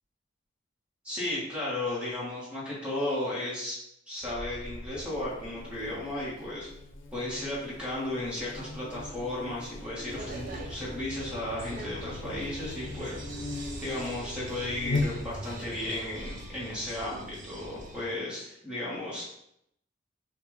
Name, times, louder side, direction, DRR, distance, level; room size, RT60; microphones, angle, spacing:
voice 1, 1.0-3.8 4.1-6.7 7.1-13.2 13.8-19.2, left 1 dB, 5° right, -7 dB, 1.5 m, -34 dB
Buzz, 4.2-15.6, left 2 dB, 80° left, 0.6 m, -39 dB
sound 1, 10.1-18.1, right 1 dB, 45° right, 0.6 m, -42 dB
5.7 x 2.6 x 3.1 m, 0.76 s
head